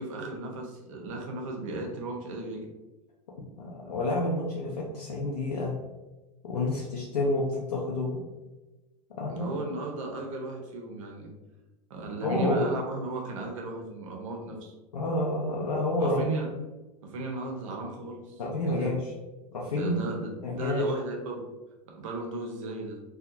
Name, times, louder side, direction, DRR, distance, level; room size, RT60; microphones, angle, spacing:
voice 1, 0.0-2.7 9.3-11.3 11.9-14.7 16.0-16.5 17.0-18.9 19.7-21.4 21.9-23.0, right 2 dB, 55° right, 2 dB, 0.6 m, -36 dB
voice 2, 3.6-5.8 6.4-8.2 9.2-9.5 12.2-12.7 14.9-16.3 18.4-19.0 19.5-20.1 20.4-20.9, left 2 dB, 75° left, -4 dB, 0.5 m, -29 dB
2.7 x 2.3 x 2.5 m, 1.1 s
figure-of-eight pair, 90°, 20 cm